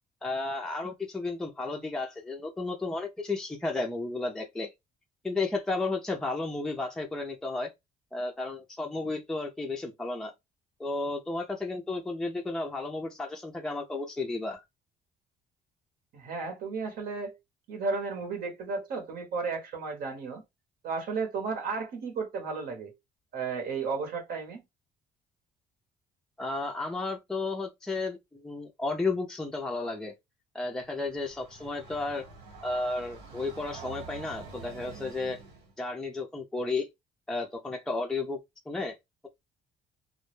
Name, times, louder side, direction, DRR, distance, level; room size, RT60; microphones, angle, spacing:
voice 1, 0.2-4.7 5.2-7.7 8.1-10.3 10.8-14.6 26.4-30.1 30.5-32.2 32.6-35.4 35.8-36.9 37.3-38.4 38.7-39.0, left 3 dB, 5° left, 0.4 m, -33 dB
voice 2, 16.1-17.4 17.7-20.4 20.8-22.9 23.3-24.6, right 4 dB, 65° right, 0.9 m, -33 dB
Train, 30.8-35.7, right 4 dB, 90° right, 1.1 m, -47 dB
2.1 x 2.0 x 3.0 m
cardioid pair, 110°, 17 cm